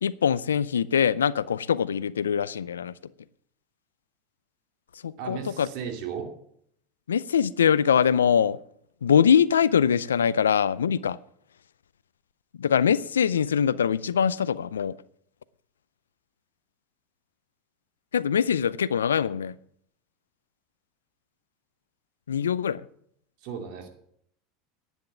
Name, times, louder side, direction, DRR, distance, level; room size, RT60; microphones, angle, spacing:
voice 1, 0.0-2.9 5.0-5.7 7.1-8.6 9.0-11.2 12.6-14.9 18.1-19.5 22.3-22.8, left 7 dB, 85° left, 0.5 m, -23 dB
voice 2, 5.2-6.3 23.4-23.9, right 7 dB, 60° right, 2.4 m, -35 dB
11.0 x 9.0 x 7.1 m
hypercardioid pair, 85°, 0 cm